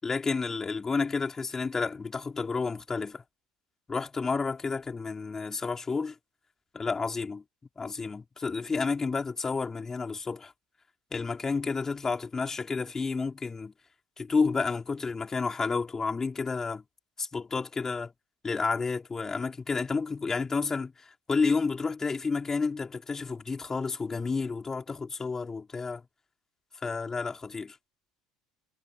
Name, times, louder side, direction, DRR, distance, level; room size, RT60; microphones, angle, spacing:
voice 1, 0.0-3.2 3.9-6.1 6.7-7.4 7.8-10.5 11.1-13.7 14.2-16.8 17.2-18.1 18.4-26.0 26.8-27.8, left 4 dB, 20° left, 4.7 m, -30 dB
figure-of-eight pair, 65°, 2 cm